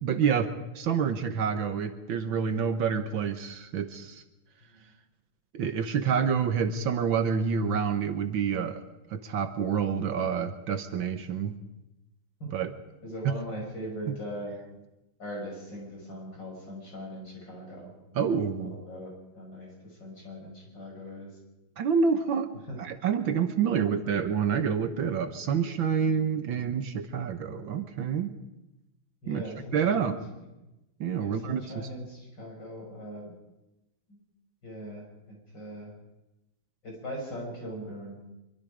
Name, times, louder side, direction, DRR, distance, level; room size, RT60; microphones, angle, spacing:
voice 1, 0.0-4.2 5.5-8.8 9.1-11.6 12.5-12.7 13.2-13.3 14.1-14.2 18.2-18.8 21.8-22.5 22.8-28.4 29.3-29.4 29.7-30.2 31.0-31.9, right 7 dB, 65° right, 9 dB, 1.8 m, -28 dB
voice 2, 13.0-14.6 15.2-18.2 18.6-21.3 22.7-22.8 29.2-30.5 31.2-33.3 34.1-34.2 34.6-35.9 36.8-38.2, equal, 55° left, -1 dB, 6.9 m, -40 dB
24.5 x 23.5 x 5.1 m, 0.98 s
omnidirectional pair, 2.4 m